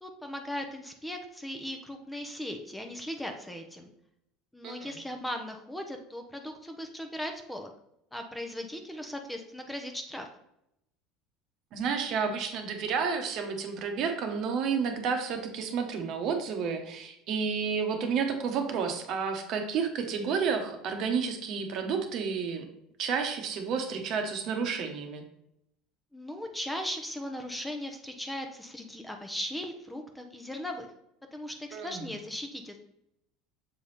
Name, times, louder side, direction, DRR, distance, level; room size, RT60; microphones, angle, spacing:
voice 1, 0.0-3.9 4.5-7.7 8.1-10.3 26.1-30.9 31.3-32.8, left 1 dB, 5° left, 4 dB, 0.7 m, -38 dB
voice 2, 4.6-5.0 11.7-22.6 23.0-25.2 31.7-32.2, right 6 dB, 55° right, 5 dB, 1.0 m, -31 dB
6.8 x 3.4 x 4.1 m, 0.80 s
supercardioid pair, 115°, 0 cm